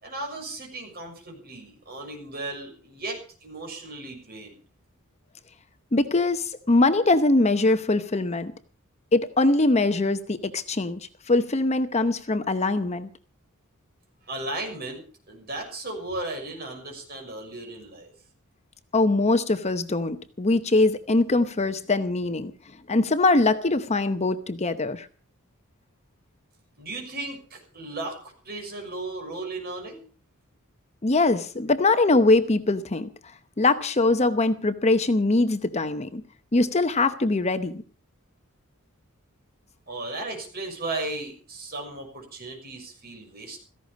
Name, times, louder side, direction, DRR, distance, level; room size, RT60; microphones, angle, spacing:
voice 1, 0.0-4.6 14.3-18.1 26.8-28.2 28.4-30.0 39.9-43.6, right 2 dB, 45° right, 3 dB, 6.4 m, -35 dB
voice 2, 5.9-8.5 9.1-13.1 18.9-22.5 22.9-25.1 31.0-33.1 33.6-36.2 36.5-37.8, left 2 dB, 30° left, 10 dB, 0.8 m, -22 dB
16.5 x 15.0 x 5.2 m, 0.40 s
head